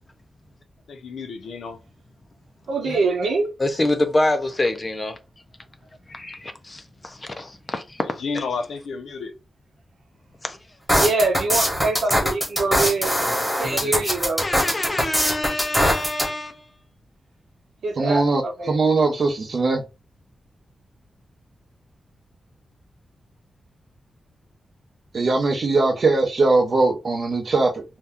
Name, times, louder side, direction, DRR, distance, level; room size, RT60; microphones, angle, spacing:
voice 1, 0.9-1.8 8.0-9.3, left 4 dB, 80° left, 0.6 m, -31 dB
voice 2, 2.7-3.6 10.9-13.1 13.6-14.5 17.8-18.8, right 3 dB, 80° right, 0.9 m, -24 dB
voice 3, 3.6-5.2 6.1-8.4 10.4-10.6 13.3-13.4 13.6-14.0 14.4-16.6, left 2 dB, 20° left, 0.4 m, -26 dB
sound 1, 10.9-16.3, equal, ahead, 1.1 m, -21 dB
voice 4, 18.0-18.4 18.7-19.8 25.1-27.8, right 3 dB, 45° right, 0.7 m, -20 dB
2.7 x 2.2 x 3.4 m
wide cardioid pair, 175°, 0 cm